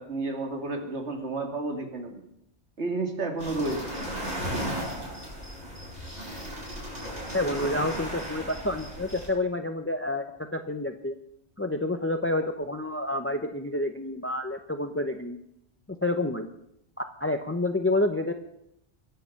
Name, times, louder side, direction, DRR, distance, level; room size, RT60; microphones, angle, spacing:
voice 1, 0.0-2.2 2.8-3.9, right 2 dB, 75° right, 3 dB, 2.6 m, -31 dB
sound 1, 3.4-9.3, equal, 35° right, 7.1 m, -35 dB
voice 2, 7.3-11.1 11.6-15.4 15.9-16.5 17.0-18.3, left 1 dB, 15° left, 7 dB, 0.8 m, -29 dB
22.5 x 7.9 x 7.1 m, 0.78 s
omnidirectional pair, 1.1 m